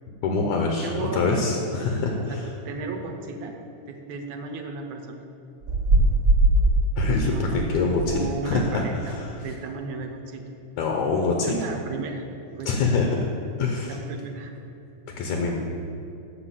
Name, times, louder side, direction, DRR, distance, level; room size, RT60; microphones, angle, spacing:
voice 1, 0.2-2.5 7.0-9.3 10.8-11.5 12.7-13.3 13.6-14.0 15.2-15.6, left 3 dB, 70° left, 1 dB, 2.0 m, -25 dB
voice 2, 0.8-1.5 2.3-2.4 2.7-3.5 3.9-5.2 7.3-7.6 8.1-9.2 9.4-10.5 11.5-12.2 12.6-12.7 13.9-14.5, right 4 dB, 80° right, 2 dB, 2.2 m, -34 dB
sound 1, 5.6-6.8 7.9-8.2 8.5-8.7, right 2 dB, 40° right, 1.8 m, -20 dB
8.4 x 6.1 x 7.5 m, 2.7 s
omnidirectional pair, 3.5 m